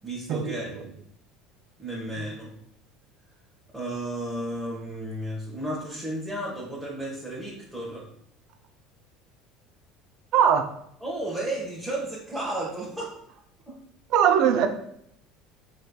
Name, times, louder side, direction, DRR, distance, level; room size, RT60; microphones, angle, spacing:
voice 1, 0.0-0.7 1.8-2.5 3.7-8.1 11.0-13.1 13.7-13.8, right 1 dB, 5° right, -6 dB, 1.3 m, -33 dB
voice 2, 10.3-10.7 14.1-14.7, right 8 dB, 60° right, 7 dB, 0.5 m, -20 dB
4.9 x 3.1 x 2.3 m, 0.72 s
hypercardioid pair, 75°, 0 cm